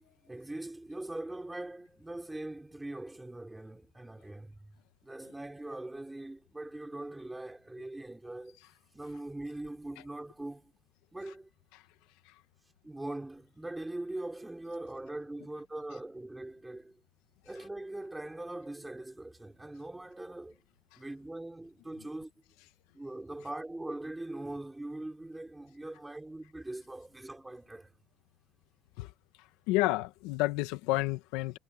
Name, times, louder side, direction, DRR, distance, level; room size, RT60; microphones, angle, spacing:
voice 1, 0.0-4.8 5.0-8.6 8.9-10.7 11.1-11.5 12.8-17.0 17.4-20.6 21.0-22.3 22.9-27.9, right 2 dB, 5° right, 4.5 m, -42 dB
voice 2, 29.7-31.6, left 19 dB, 80° left, 1.4 m, -30 dB
cardioid pair, 140°, 0 cm